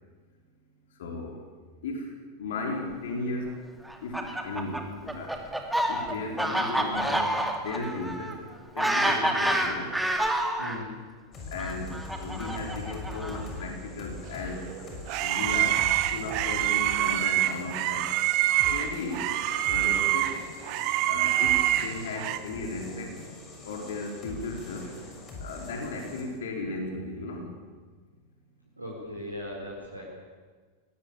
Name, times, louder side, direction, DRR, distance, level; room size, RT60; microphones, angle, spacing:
voice 1, 1.0-1.3 1.8-2.1 2.4-3.5 4.0-5.3 5.9-7.3 7.6-8.3 8.7-9.9 11.5-11.9 12.2-14.6 15.2-15.8 16.1-18.0 18.7-19.2 19.7-20.3 21.1-23.1 23.7-24.8 25.4-27.5, left 3 dB, 60° left, 2 dB, 4.5 m, -35 dB
Fowl, 3.9-10.8 11.6-13.6, right 1 dB, 5° right, 2.7 m, -28 dB
voice 2, 10.6-10.9 28.8-30.0, left 1 dB, 85° right, -3 dB, 4.5 m, -38 dB
sound 1, 11.3-26.2, left 2 dB, 30° left, 6.7 m, -42 dB
sound 2, 14.5-22.4, right 14 dB, 45° right, 1.5 m, -26 dB
21.5 x 18.5 x 8.7 m, 1.5 s
figure-of-eight pair, 90°, 0 cm